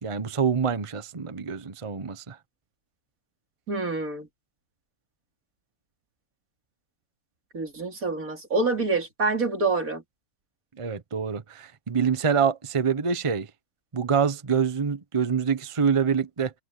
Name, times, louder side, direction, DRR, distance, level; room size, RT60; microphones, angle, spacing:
voice 1, 0.0-2.4 10.8-13.5 13.9-16.5, right 6 dB, 25° right, 0.9 m, -26 dB
voice 2, 3.7-4.3 7.5-10.0, right 3 dB, 75° right, 3.8 m, -26 dB
omnidirectional pair, 1.5 m